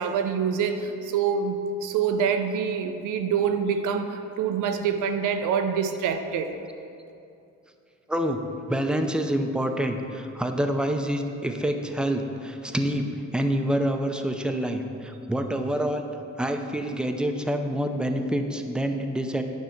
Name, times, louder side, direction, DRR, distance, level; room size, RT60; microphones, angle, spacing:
voice 1, 0.0-6.6, right 6 dB, 90° right, 7 dB, 0.7 m, -26 dB
voice 2, 8.1-8.4 8.7-16.1 16.4-19.4, equal, 5° right, 5 dB, 0.6 m, -27 dB
9.4 x 5.5 x 4.5 m, 2.6 s
cardioid pair, 90°, 30 cm